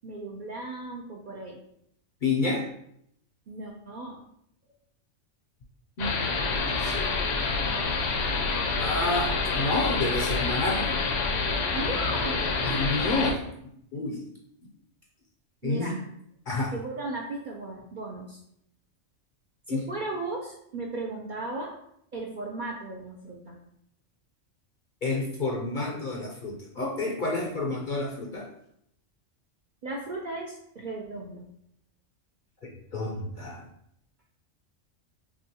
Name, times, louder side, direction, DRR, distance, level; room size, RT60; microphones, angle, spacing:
voice 1, 0.0-1.6 3.5-4.2 11.7-12.9 15.6-16.0 16.7-18.4 19.7-21.8 22.1-23.6 27.7-27.8 29.8-31.5, right 2 dB, 55° right, -1 dB, 0.5 m, -36 dB
voice 2, 2.2-2.6 6.0-6.2 6.5-7.2 8.8-10.9 12.7-13.5 13.9-14.2 15.6-16.0 16.5-16.7 19.7-19.8 25.0-28.5 32.6-33.6, left 2 dB, 55° left, -1 dB, 0.6 m, -29 dB
sound 1, 6.0-13.3, left 4 dB, 80° left, 1.0 m, -27 dB
6.0 x 2.3 x 2.8 m, 0.72 s
omnidirectional pair, 1.3 m